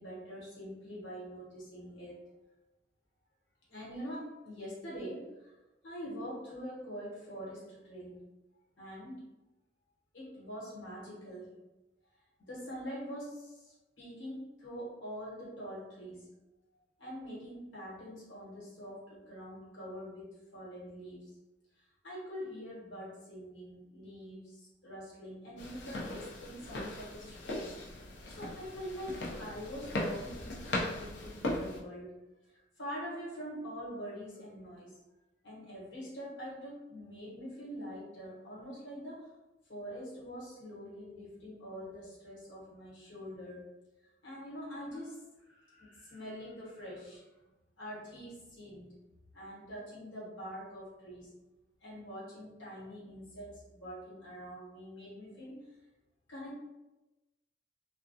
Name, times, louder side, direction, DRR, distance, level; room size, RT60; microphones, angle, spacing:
voice 1, 0.0-2.2 3.7-5.5 5.8-8.3 8.8-9.2 10.1-11.5 12.4-16.3 17.0-21.4 21.8-35.0 35.4-39.3 39.7-43.7 44.2-47.3 47.8-49.0 49.3-51.3 51.8-55.7 56.3-56.6, equal, 90° left, -7 dB, 1.1 m, -45 dB
sound 1, 25.6-31.8, left 1 dB, 75° left, 0.5 m, -38 dB
2.2 x 2.1 x 2.6 m, 1.0 s
head